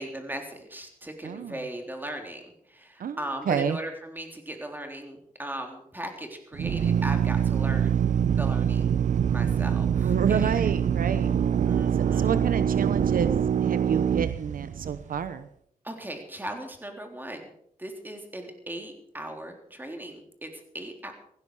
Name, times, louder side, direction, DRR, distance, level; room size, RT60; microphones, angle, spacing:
voice 1, 0.0-8.1 8.4-8.9 9.3-10.7 11.7-12.4 15.8-17.5 17.8-21.1, right 1 dB, 15° right, 4 dB, 3.6 m, -38 dB
voice 2, 1.2-1.6 3.0-3.2 3.5-3.8 10.0-11.3 11.9-15.5, right 7 dB, 70° right, 12 dB, 0.9 m, -29 dB
Drill, 6.5-15.2, right 8 dB, 55° right, 0.5 m, -24 dB
17.0 x 15.5 x 4.9 m, 0.68 s
cardioid pair, 95°, 15 cm